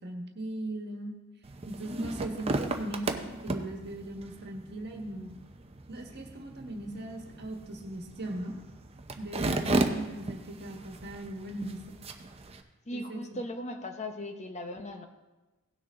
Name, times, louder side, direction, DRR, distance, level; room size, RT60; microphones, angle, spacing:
voice 1, 0.0-1.1 1.6-5.3 5.9-8.5 9.2-11.8 12.9-13.4, right 1 dB, 50° right, 3 dB, 1.6 m, -38 dB
sound 1, 1.4-12.6, right 2 dB, 25° right, 0.7 m, -35 dB
voice 2, 9.7-10.1 12.9-15.1, left 1 dB, 30° left, 5 dB, 0.8 m, -38 dB
17.5 x 6.4 x 3.8 m, 1.1 s
head